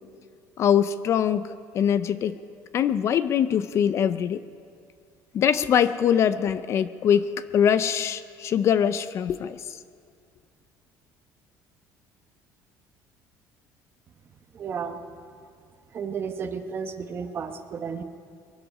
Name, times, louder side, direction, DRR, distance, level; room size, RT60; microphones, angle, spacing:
voice 1, 0.6-2.3 2.7-4.4 5.3-9.8, left 8 dB, 40° left, 13 dB, 0.4 m, -23 dB
voice 2, 14.5-15.0 15.9-18.0, right 6 dB, 30° right, 7 dB, 0.9 m, -33 dB
22.5 x 12.0 x 5.4 m, 2.3 s
cardioid pair, 155°, 7 cm